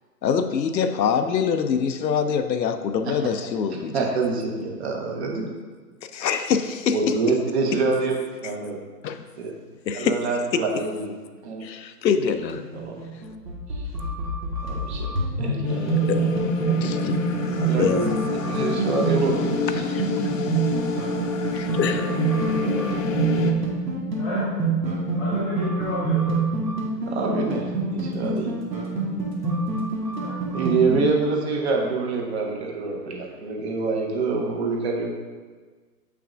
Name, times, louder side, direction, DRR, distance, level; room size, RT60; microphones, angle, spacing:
voice 1, 0.2-3.9 6.1-7.0 9.0-9.2 9.9-10.2 10.5-10.6 11.6-12.6 13.1-13.2 16.1-16.2 16.8-17.2 17.8-18.1 19.9-20.1 21.5-22.2, left 7 dB, 85° left, 8 dB, 0.7 m, -24 dB
voice 2, 3.7-5.5 6.9-8.1 8.4-8.8 9.4-9.5 9.9-11.1 11.4-11.6 12.7-13.0 13.7-13.9 14.7-15.1 15.4-16.3 16.6-17.0 17.4-18.1 18.4-19.8 21.4-21.8 27.0-28.5 30.5-35.1, right 4 dB, 40° right, 0 dB, 1.0 m, -26 dB
sound 1, 12.1-31.1, right 3 dB, 80° right, 1.6 m, -26 dB
sound 2, 15.7-23.5, left 5 dB, 50° left, 0.7 m, -29 dB
voice 3, 25.2-26.3 30.2-30.3, left 2 dB, 5° left, -11 dB, 0.5 m, -32 dB
7.3 x 5.8 x 2.5 m, 1.4 s
hypercardioid pair, 145°, 50 cm